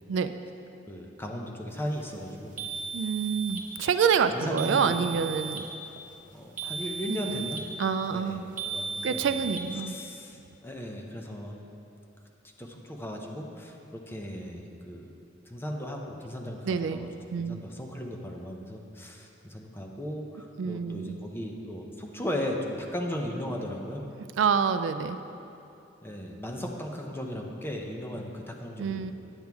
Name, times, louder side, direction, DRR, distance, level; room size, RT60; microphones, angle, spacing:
voice 1, 0.9-2.5 4.3-5.0 6.3-7.6 8.1-9.4 9.9-11.6 12.6-15.1 15.5-17.1 17.4-24.0 26.0-29.1, equal, 10° left, 1 dB, 0.7 m, -36 dB
sound 1, 2.6-3.7 4.6-5.7 6.6-7.7 8.6-9.7, right 5 dB, 45° right, 0.8 m, -36 dB
voice 2, 2.9-5.6 7.1-7.5 7.8-8.5 9.0-10.0 16.6-17.7 20.6-21.2 24.4-25.2 28.8-29.1, right 6 dB, 80° right, 10 dB, 0.3 m, -27 dB
9.0 x 7.8 x 3.5 m, 2.8 s
head